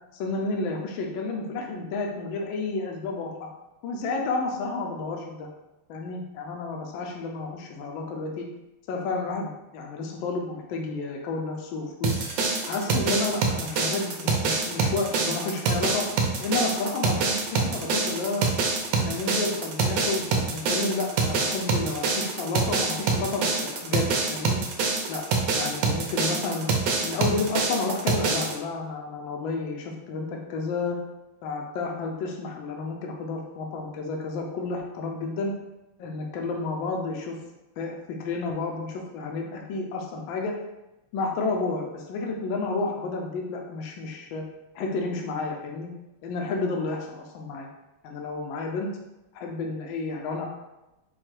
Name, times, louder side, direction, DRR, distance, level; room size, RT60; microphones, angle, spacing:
voice 1, 0.1-3.3 3.8-5.5 5.9-8.5 8.9-12.2 12.7-16.1 16.4-18.4 18.9-24.6 25.1-25.2 25.6-26.7 27.0-31.0 31.4-35.5 36.0-37.4 37.8-40.6 41.1-44.4 44.7-45.9 46.2-47.7 48.0-48.9 49.3-50.5, left 3 dB, 75° left, 1 dB, 1.4 m, -31 dB
sound 1, 12.0-28.5, right 4 dB, 70° right, 1.3 m, -26 dB
4.7 x 2.3 x 4.4 m, 0.97 s
omnidirectional pair, 2.2 m